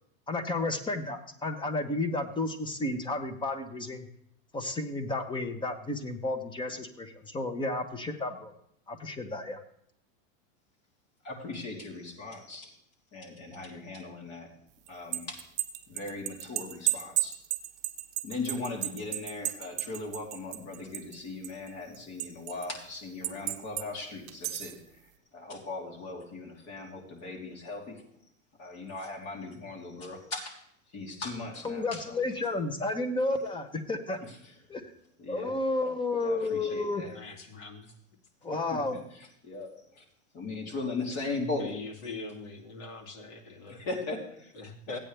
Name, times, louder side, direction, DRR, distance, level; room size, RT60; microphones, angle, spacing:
voice 1, 0.3-4.1 4.5-8.5 8.9-9.6 31.6-34.2 35.3-37.0 38.4-39.0, left 2 dB, 10° left, 7 dB, 1.0 m, -32 dB
voice 2, 11.2-12.7 13.1-14.5 14.9-15.4 15.9-17.3 18.2-24.8 25.3-27.9 28.6-30.5 30.9-32.2 35.2-35.6 36.2-37.1 38.7-38.8 39.1-39.7 40.0-40.1 40.3-41.7 43.8-44.5 44.9-45.0, left 3 dB, 40° left, -1 dB, 3.1 m, -38 dB
sound 1, 14.9-21.2 21.4-22.7 23.2-23.9 24.3-24.8, right 17 dB, 35° right, 0.9 m, -33 dB
voice 3, 37.1-37.9 41.6-43.8 44.6-45.0, left 3 dB, 60° left, 1 dB, 2.5 m, -42 dB
15.5 x 9.0 x 3.3 m, 0.71 s
supercardioid pair, 135°, 40 cm